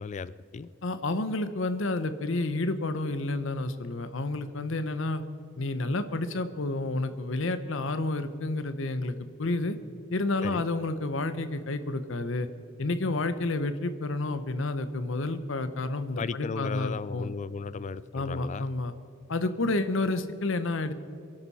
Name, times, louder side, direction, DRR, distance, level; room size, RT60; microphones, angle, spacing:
voice 1, 0.0-0.7 10.4-10.6 16.2-18.7, left 5 dB, 35° left, 18 dB, 0.3 m, -35 dB
voice 2, 0.8-5.2 5.6-9.8 10.1-12.5 12.8-17.3 18.1-18.9 19.3-20.9, left 2 dB, 65° left, 11 dB, 0.8 m, -30 dB
23.0 x 12.0 x 4.2 m, 2.4 s
head